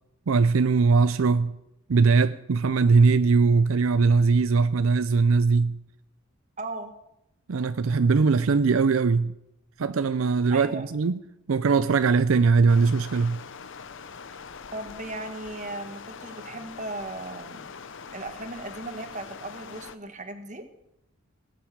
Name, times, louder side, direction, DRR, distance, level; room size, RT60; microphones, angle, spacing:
voice 1, 0.3-1.5 1.9-5.8 7.5-9.3 9.8-11.2 11.5-13.4, right 4 dB, 75° right, 0.5 m, -21 dB
voice 2, 6.6-6.9 10.5-10.9 14.7-17.6 18.1-20.7, right 2 dB, 35° right, 1.5 m, -37 dB
Stream, 12.7-20.0, left 5 dB, 65° left, 0.7 m, -43 dB
19.0 x 7.6 x 8.7 m
head